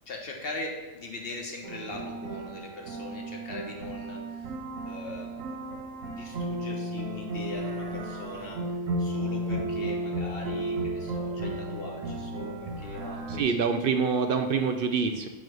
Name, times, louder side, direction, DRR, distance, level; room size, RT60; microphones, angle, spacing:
voice 1, 0.1-4.5 4.8-5.4 6.0-8.6 9.0-13.5, left 2 dB, 50° left, 1 dB, 1.2 m, -40 dB
sound 1, 1.6-13.4, right 1 dB, 85° right, 1.2 m, -34 dB
voice 2, 13.3-15.3, right 5 dB, 60° right, 6 dB, 0.6 m, -26 dB
7.6 x 3.1 x 6.1 m, 1.3 s
omnidirectional pair, 1.3 m